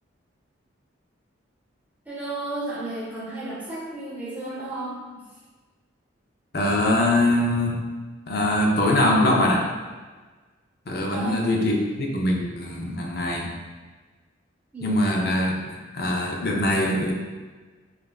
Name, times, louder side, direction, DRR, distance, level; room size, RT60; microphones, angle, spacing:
voice 1, 2.1-5.0 11.1-11.5 14.7-15.0, right 2 dB, 10° right, -7 dB, 0.8 m, -33 dB
voice 2, 6.5-7.9 8.3-9.7 10.9-13.5 14.8-17.1, left 1 dB, 55° left, -1 dB, 0.6 m, -23 dB
5.3 x 2.5 x 2.3 m, 1.4 s
head